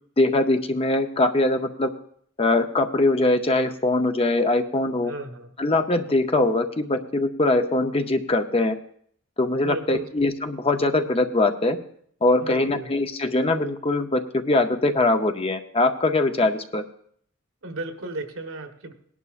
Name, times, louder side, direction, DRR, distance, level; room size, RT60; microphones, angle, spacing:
voice 1, 0.2-1.9 2.4-5.1 5.6-8.8 9.4-11.8 12.2-16.8, left 2 dB, 30° left, 7 dB, 0.7 m, -22 dB
voice 2, 5.0-5.5 9.6-10.1 12.4-12.9 17.6-18.9, right 2 dB, 80° right, 6 dB, 1.2 m, -34 dB
18.0 x 11.0 x 2.5 m, 0.63 s
head